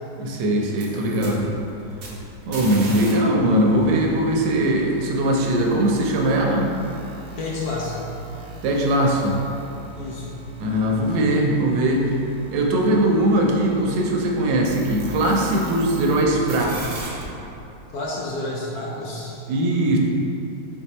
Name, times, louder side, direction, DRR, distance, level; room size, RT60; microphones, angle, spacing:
voice 1, 0.2-1.5 2.4-6.7 8.6-9.4 10.6-12.1 12.5-17.2 19.5-20.0, right 1 dB, 80° right, 0 dB, 1.2 m, -20 dB
sound 1, 0.6-3.1 3.4-16.2 16.5-17.2, right 2 dB, 60° right, 0.7 m, -39 dB
voice 2, 7.4-8.1 10.0-10.3 17.9-19.4, left 2 dB, 70° left, -4 dB, 0.9 m, -30 dB
4.1 x 2.7 x 4.2 m, 2.8 s
omnidirectional pair, 1.9 m